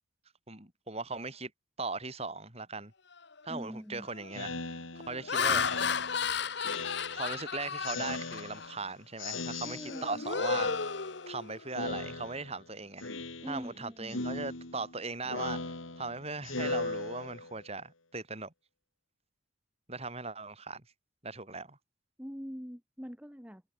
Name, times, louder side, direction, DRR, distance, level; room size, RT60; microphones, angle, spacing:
voice 1, 0.5-1.5 1.8-2.9 3.4-4.8 5.1-6.0 7.1-10.7 11.3-13.1 13.5-15.6 16.0-18.5 19.9-20.8 21.2-21.8, right 3 dB, 30° right, 7.7 m, -39 dB
Laughter, 3.2-3.5 4.0-4.3 4.9-8.8 9.2-9.4 9.8-11.8, left 5 dB, 60° left, 1.2 m, -33 dB
voice 2, 3.5-4.1 9.6-10.2 13.4-14.2 22.2-23.6, equal, 5° right, 5.4 m, -43 dB
Speech synthesizer, 4.3-7.5 7.8-8.9 9.2-10.2 10.5-11.4 11.7-12.6 13.0-13.8 14.1-17.6, left 3 dB, 85° left, 3.5 m, -39 dB
head